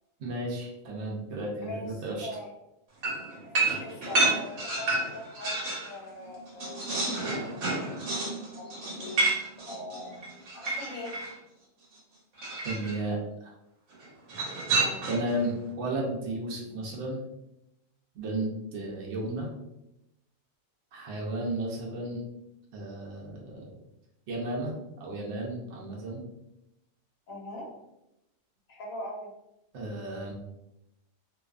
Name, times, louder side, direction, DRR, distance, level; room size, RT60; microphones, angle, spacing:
voice 1, 0.2-2.3 12.6-13.5 15.1-17.2 18.1-19.5 20.9-22.2 22.7-23.8 24.3-24.7 25.0-26.2 29.7-30.3, right 1 dB, 65° right, -2 dB, 0.8 m, -33 dB
voice 2, 1.6-2.5 3.4-6.9 8.1-9.3 9.7-10.2 10.5-11.2 14.8-15.1 27.3-27.7 28.7-29.3, left 1 dB, 80° left, -1 dB, 1.2 m, -41 dB
sound 1, 3.0-5.9 6.3-11.3 12.4-13.0 14.3-15.3, right 2 dB, 85° right, 1.2 m, -30 dB
2.6 x 2.3 x 2.3 m, 0.88 s
omnidirectional pair, 1.4 m